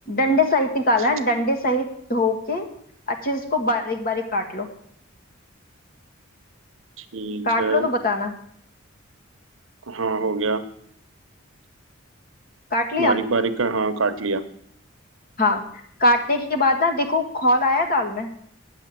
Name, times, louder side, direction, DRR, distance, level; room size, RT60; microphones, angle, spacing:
voice 1, 0.1-2.7 3.1-4.7 7.4-8.3 12.7-13.2 15.4-15.6 16.0-18.3, left 2 dB, 45° left, 4 dB, 1.8 m, -22 dB
voice 2, 7.1-7.9 9.9-10.6 13.0-14.4, right 4 dB, 75° right, 9 dB, 1.0 m, -24 dB
8.9 x 8.8 x 7.5 m, 0.66 s
head